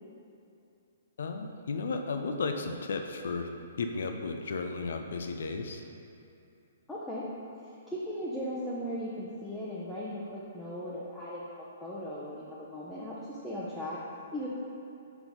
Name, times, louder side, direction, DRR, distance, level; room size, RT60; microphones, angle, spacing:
voice 1, 1.2-3.5 3.8-5.8, left 4 dB, 60° left, 5 dB, 0.6 m, -34 dB
voice 2, 6.9-7.3 7.6-14.0 14.3-14.5, equal, 5° left, -8 dB, 0.8 m, -38 dB
5.8 x 5.7 x 3.9 m, 2.7 s
figure-of-eight pair, 120°, 0 cm